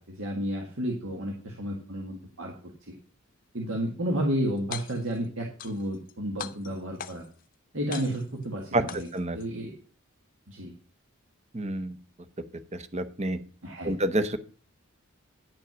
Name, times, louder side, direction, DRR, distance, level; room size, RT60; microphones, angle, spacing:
voice 1, 0.0-2.5 2.8-2.9 3.5-7.2 7.7-9.1 9.3-9.8 10.5-10.7 13.6-13.9, right 1 dB, 70° right, -1 dB, 1.9 m, -32 dB
sound 1, 4.6-5.2 5.6-6.1 6.4-7.4 7.9-8.5 8.9-9.5, left 8 dB, 45° left, 0.6 m, -40 dB
voice 2, 11.5-12.0 12.7-13.4 13.8-14.4, right 1 dB, 35° right, 12 dB, 0.8 m, -28 dB
10.0 x 5.3 x 6.0 m, 0.41 s
head